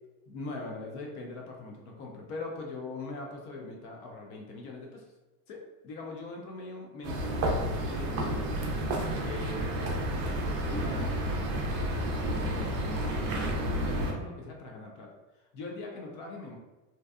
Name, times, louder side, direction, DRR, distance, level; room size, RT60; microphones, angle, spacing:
voice 1, 0.3-5.1 5.5-7.3 7.8-8.7 9.2-16.6, left 3 dB, 45° left, 0 dB, 0.4 m, -42 dB
sound 1, 7.0-14.1, right 1 dB, 35° right, 0.5 m, -31 dB
2.6 x 2.2 x 2.3 m, 1.1 s
supercardioid pair, 140°, 42 cm